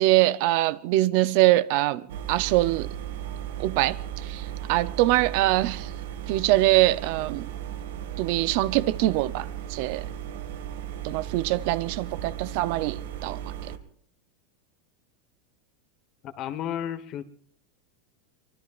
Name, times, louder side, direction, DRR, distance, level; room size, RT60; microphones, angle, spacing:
voice 1, 0.0-2.9 3.6-5.9 6.3-7.5 8.2-10.0 11.0-13.5, right 17 dB, 45° right, 0.6 m, -23 dB
sound 1, 2.1-13.8, right 10 dB, 80° right, 1.9 m, -36 dB
voice 2, 16.2-17.3, left 10 dB, 30° left, 1.2 m, -32 dB
24.5 x 21.5 x 2.5 m
supercardioid pair, 175°, 0 cm